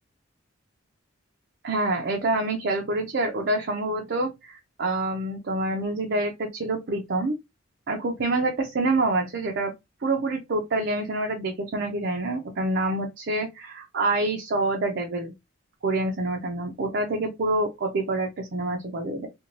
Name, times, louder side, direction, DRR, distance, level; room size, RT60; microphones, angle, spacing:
voice 1, 1.6-7.3 7.9-9.7 10.0-15.3 15.8-19.3, right 2 dB, 55° right, 0.5 m, -27 dB
2.5 x 2.2 x 3.0 m
head